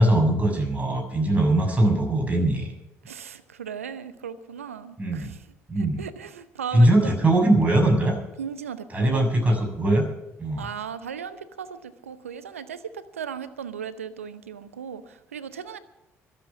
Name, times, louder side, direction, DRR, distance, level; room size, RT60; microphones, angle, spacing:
voice 1, 0.0-2.7 5.0-5.3 5.7-6.0 6.7-8.2 8.9-10.0 10.4-10.7, right 1 dB, 20° right, 1 dB, 6.7 m, -21 dB
voice 2, 3.1-5.5 5.8-7.2 8.4-9.2 10.6-15.8, right 7 dB, 85° right, 15 dB, 0.8 m, -37 dB
24.5 x 8.1 x 5.9 m, 0.90 s
figure-of-eight pair, 45°, 7 cm